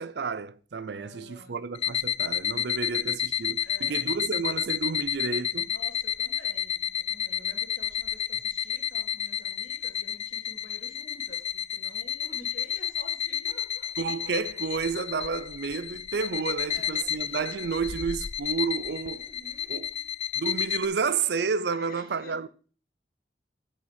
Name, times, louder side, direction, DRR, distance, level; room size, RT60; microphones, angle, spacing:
voice 1, 0.0-5.7 14.0-19.3 19.7-19.9 20.3-22.5, right 5 dB, 65° right, 0.5 m, -31 dB
voice 2, 0.9-1.6 3.6-4.2 5.4-13.9 16.7-17.2 19.1-20.1 21.7-22.5, left 1 dB, 55° left, 1.9 m, -50 dB
sound 1, 1.8-20.9, left 9 dB, 35° left, 0.3 m, -31 dB
8.6 x 6.6 x 4.8 m
head